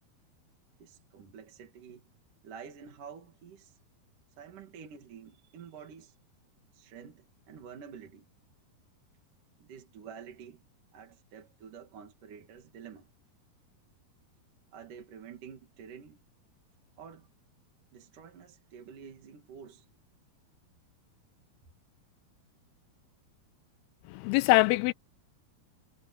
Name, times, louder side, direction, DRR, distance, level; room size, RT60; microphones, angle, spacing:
voice 1, 0.8-2.0 2.4-3.8 4.4-6.2 6.7-8.3 9.6-10.6 10.9-13.1 14.7-16.2 17.0-17.3 17.9-19.9, right 7 dB, 55° right, 3.5 m, -49 dB
voice 2, 24.1-24.9, left 20 dB, 80° left, 2.4 m, -23 dB
omnidirectional pair, 4.6 m